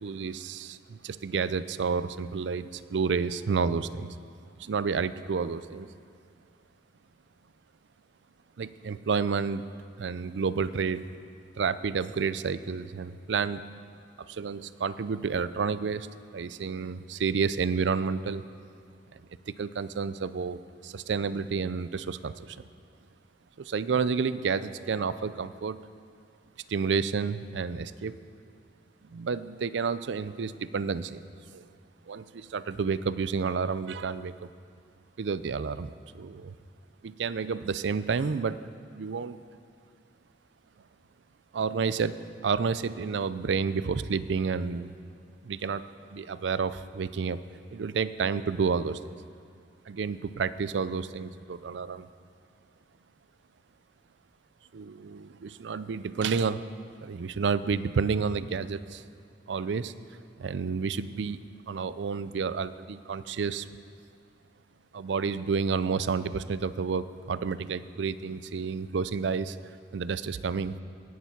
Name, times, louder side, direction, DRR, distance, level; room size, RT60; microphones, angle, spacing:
voice 1, 0.0-4.1 4.6-5.9 8.6-9.6 10.0-11.1 11.6-13.6 14.2-16.1 16.3-18.4 19.5-22.6 23.6-25.8 26.7-28.1 29.1-31.2 31.5-31.7 32.1-34.3 35.2-36.5 37.0-38.6 38.9-39.4 41.5-44.9 45.4-45.8 46.1-47.4 47.7-49.0 49.9-52.1 54.7-56.6 57.0-59.0 59.5-59.9 60.4-61.4 61.7-63.7 64.9-69.6 69.9-70.8, right 5 dB, 70° right, 15 dB, 0.4 m, -30 dB
17.5 x 7.0 x 5.9 m, 2.4 s
head